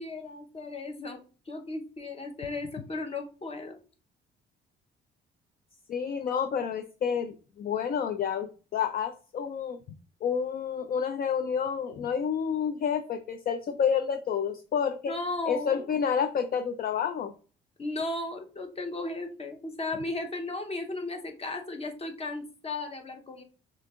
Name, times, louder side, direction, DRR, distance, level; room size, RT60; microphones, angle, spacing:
voice 1, 0.0-3.8 15.1-15.9 17.8-23.4, left 2 dB, 30° left, 5 dB, 0.8 m, -35 dB
voice 2, 5.9-9.8 10.2-15.1 15.5-17.3, left 7 dB, 50° left, 8 dB, 0.4 m, -29 dB
6.1 x 2.8 x 2.4 m, 0.37 s
cardioid pair, 90°, 20 cm